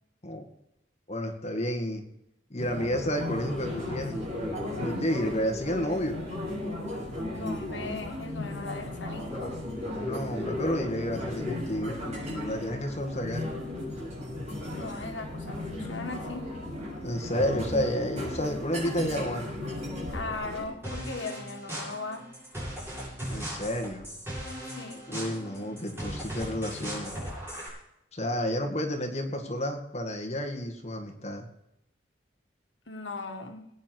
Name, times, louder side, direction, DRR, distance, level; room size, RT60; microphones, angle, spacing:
voice 1, 1.1-2.0 2.5-4.3 4.7-6.2 9.9-13.5 17.0-19.4 23.3-24.1 25.1-27.2 28.1-31.5, equal, 35° left, 3 dB, 2.0 m, -31 dB
sound 1, 2.6-20.6, left 1 dB, 35° right, 7.1 m, -35 dB
voice 2, 7.3-9.3 14.7-16.5 20.1-22.3 24.8-25.0 32.9-33.7, left 3 dB, 75° left, 5 dB, 1.7 m, -38 dB
sound 2, 20.8-27.7, equal, 15° right, 7.5 m, -38 dB
21.0 x 9.5 x 4.7 m, 0.83 s
head